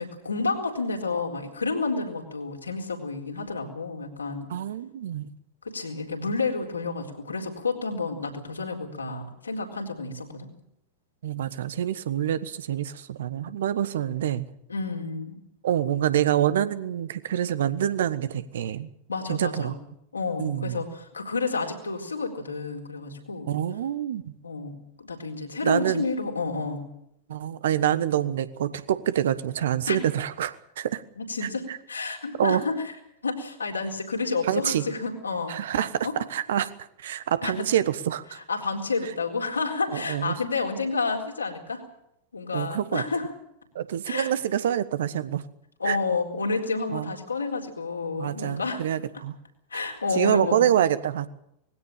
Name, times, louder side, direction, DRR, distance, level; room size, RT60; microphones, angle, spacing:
voice 1, 0.0-4.5 5.6-10.5 14.7-15.4 19.1-19.7 20.1-23.5 24.4-26.8 29.9-30.1 31.2-32.8 33.2-36.2 37.4-37.7 38.5-41.8 42.3-43.3 44.0-44.3 45.8-48.8 49.7-50.7, left 4 dB, 75° left, 2 dB, 4.1 m, -30 dB
voice 2, 4.5-5.3 11.2-14.4 15.6-18.9 19.3-19.7 20.4-20.8 23.5-24.3 25.6-26.1 27.3-31.0 31.4-31.8 32.4-32.6 34.4-34.8 35.5-36.7 37.0-38.4 39.9-40.4 42.5-43.0 43.7-45.4 45.8-46.0 46.9-47.1 48.2-49.3 49.7-49.8 50.1-51.3, right 10 dB, 60° right, 14 dB, 1.3 m, -26 dB
20.5 x 16.5 x 9.0 m, 0.78 s
figure-of-eight pair, 90°, 0 cm